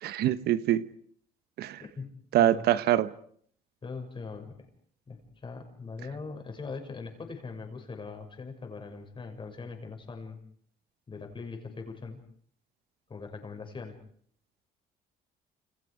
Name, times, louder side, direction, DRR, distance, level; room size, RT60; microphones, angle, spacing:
voice 1, 0.0-0.9 1.6-1.8 2.3-3.1, right 12 dB, 70° right, 1.1 m, -24 dB
voice 2, 3.8-4.7 5.1-10.4 11.1-12.2 13.1-14.0, left 4 dB, 30° left, 6.6 m, -41 dB
29.5 x 28.5 x 5.1 m
cardioid pair, 110°, 17 cm